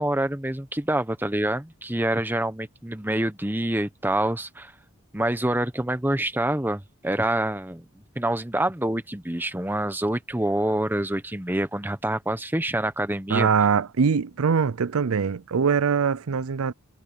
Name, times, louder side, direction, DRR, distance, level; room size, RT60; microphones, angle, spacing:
voice 1, 0.0-4.7 5.1-7.8 8.2-13.5, right 1 dB, 10° right, 1.0 m, -26 dB
voice 2, 13.3-16.7, right 6 dB, 90° right, 0.5 m, -22 dB
head